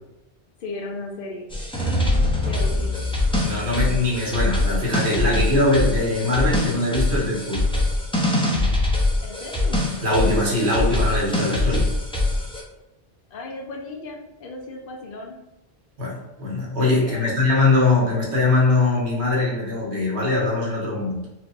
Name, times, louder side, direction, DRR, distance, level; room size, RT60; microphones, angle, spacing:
voice 1, 0.6-1.5 2.4-3.0 9.2-9.8 13.3-15.4 16.8-17.4, left 2 dB, 60° left, 1 dB, 0.7 m, -35 dB
sound 1, 1.5-12.6, left 2 dB, 5° left, 0.5 m, -23 dB
sound 2, 1.8-4.3, right 5 dB, 70° right, 0.9 m, -43 dB
voice 2, 2.4-2.8 3.4-7.6 10.0-11.9 16.0-21.3, left 2 dB, 90° right, -3 dB, 1.3 m, -22 dB
4.6 x 2.3 x 2.5 m, 0.93 s
omnidirectional pair, 1.1 m